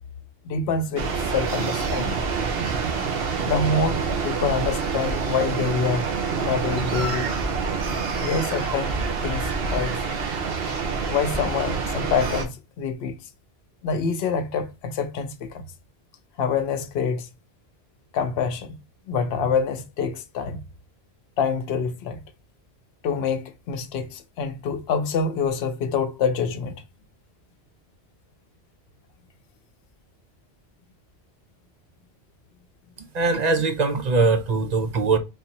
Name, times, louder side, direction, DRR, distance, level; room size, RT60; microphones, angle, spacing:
voice 1, 0.4-2.2 3.5-6.1 6.4-7.3 8.2-10.0 11.1-13.2 13.8-15.7 16.4-17.3 18.1-18.8 19.1-20.6 21.4-22.2 23.0-26.7, left 5 dB, 75° left, 0.9 m, -26 dB
sound 1, 0.9-12.4, right 5 dB, 65° right, 1.0 m, -27 dB
voice 2, 33.1-35.2, right 3 dB, 45° right, 0.7 m, -21 dB
4.0 x 2.6 x 2.8 m
omnidirectional pair, 1.1 m